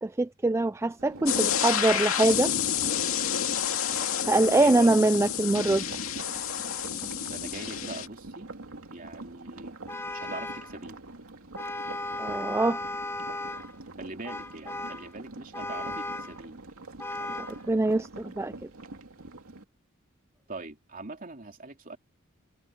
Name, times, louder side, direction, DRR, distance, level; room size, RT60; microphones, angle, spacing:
voice 1, 0.0-2.5 4.3-5.8 12.2-12.8 17.4-18.5, right 2 dB, 15° right, 0.3 m, -24 dB
sound 1, 1.0-19.6, right 2 dB, 80° right, 2.6 m, -45 dB
sound 2, 1.3-8.1, left 8 dB, 80° left, 2.4 m, -29 dB
voice 2, 4.5-5.0 7.3-8.5 8.9-9.8 10.1-11.0 14.0-16.6 20.5-22.0, right 2 dB, 40° right, 3.1 m, -42 dB
Vehicle horn car horn honking, 9.9-10.8 11.6-13.7 14.3-15.1 15.5-16.4 17.0-17.6, left 2 dB, 10° left, 1.0 m, -36 dB
head